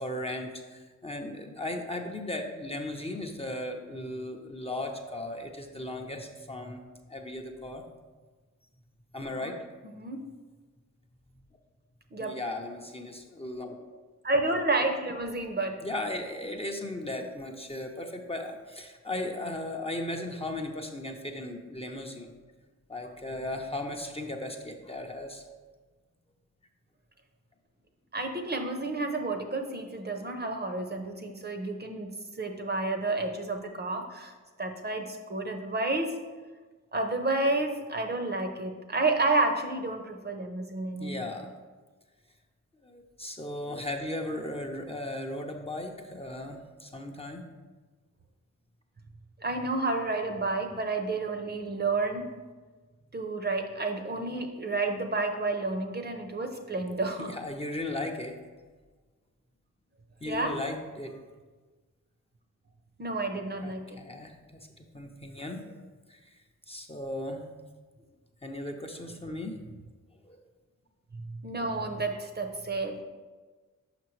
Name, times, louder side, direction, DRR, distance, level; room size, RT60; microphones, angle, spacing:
voice 1, 0.0-6.8 7.1-7.8 9.1-9.6 12.2-13.8 15.8-22.3 22.9-25.4 41.0-41.5 42.8-47.4 57.2-58.4 60.2-61.2 63.6-64.7 64.9-65.7 66.1-66.4 66.7-67.4 68.4-69.6 70.2-70.4, left 1 dB, 20° left, 2 dB, 0.6 m, -36 dB
voice 2, 9.8-10.2 12.1-12.4 14.2-15.8 28.1-32.1 32.4-34.3 34.6-36.2 36.9-41.2 49.4-52.3 53.1-57.3 60.2-60.6 63.0-64.0 71.4-72.9, right 2 dB, 30° right, 4 dB, 0.7 m, -30 dB
5.9 x 5.6 x 3.1 m, 1.3 s
cardioid pair, 60°, 32 cm